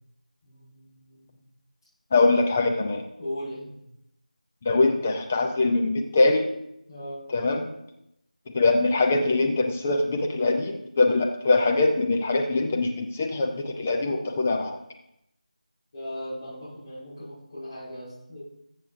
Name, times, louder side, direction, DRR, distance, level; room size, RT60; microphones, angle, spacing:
voice 1, 0.4-1.4 3.2-3.8 6.9-7.2 15.9-18.4, equal, 30° left, -13 dB, 4.9 m, -38 dB
voice 2, 2.1-3.0 4.6-6.5 7.3-7.7 8.5-14.8, left 3 dB, 10° left, 3 dB, 0.4 m, -23 dB
21.0 x 7.2 x 2.6 m, 0.81 s
figure-of-eight pair, 170°, 4 cm